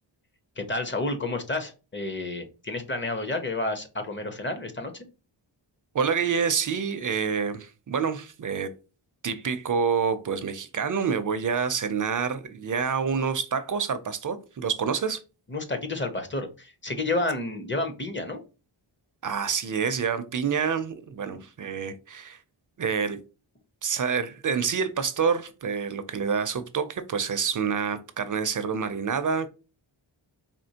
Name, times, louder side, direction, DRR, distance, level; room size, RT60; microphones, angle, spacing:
voice 1, 0.6-4.9 15.5-18.4 21.3-21.4, left 2 dB, 25° left, 7 dB, 0.6 m, -30 dB
voice 2, 5.9-8.7 9.2-15.2 19.2-22.4 22.8-23.2 23.8-29.5, right 6 dB, 45° right, 11 dB, 0.5 m, -27 dB
4.2 x 3.0 x 2.8 m, 0.32 s
wide cardioid pair, 130°, 47 cm